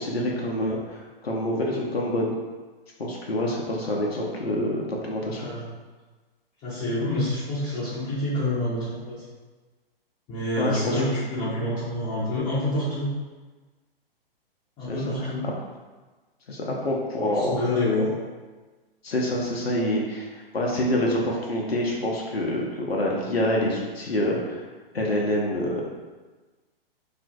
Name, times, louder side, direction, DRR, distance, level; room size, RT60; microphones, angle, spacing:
voice 1, 0.0-2.3 3.0-5.5 10.6-11.0 14.9-15.3 16.5-17.6 19.0-24.6 24.9-25.8, left 1 dB, 85° left, -2 dB, 0.5 m, -26 dB
voice 2, 5.3-5.6 6.6-9.2 10.3-13.1 14.8-15.4 17.2-18.1, left 1 dB, 20° left, -13 dB, 0.6 m, -27 dB
2.4 x 2.4 x 2.2 m, 1.3 s
figure-of-eight pair, 115°, 30 cm